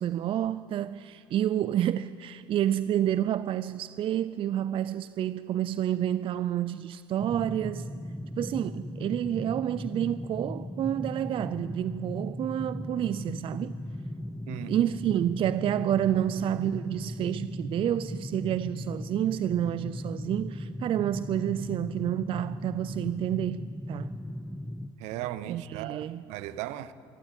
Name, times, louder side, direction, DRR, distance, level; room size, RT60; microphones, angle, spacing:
voice 1, 0.0-7.9 8.4-13.8 14.7-24.1 25.5-26.2, right 11 dB, 45° right, 0.5 m, -29 dB
sound 1, 7.2-24.9, left 1 dB, 5° left, 0.8 m, -37 dB
voice 2, 25.0-26.9, right 13 dB, 65° right, 1.0 m, -37 dB
26.5 x 12.5 x 9.1 m
hypercardioid pair, 75°, 13 cm